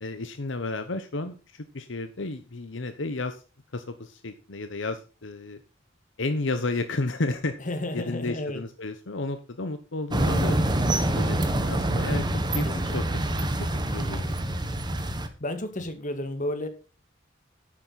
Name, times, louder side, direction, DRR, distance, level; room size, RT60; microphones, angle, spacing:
voice 1, 0.0-3.4 3.7-5.6 6.2-7.6 7.9-10.6 11.2-12.3 12.5-13.0 13.6-14.6, left 2 dB, 75° left, 9 dB, 1.0 m, -32 dB
voice 2, 7.6-8.6 12.6-13.2 14.0-14.2 15.4-16.7, left 1 dB, 40° left, 7 dB, 2.0 m, -32 dB
sound 1, 10.1-15.3, right 1 dB, 25° right, 1.3 m, -26 dB
10.5 x 8.6 x 4.1 m, 0.33 s
head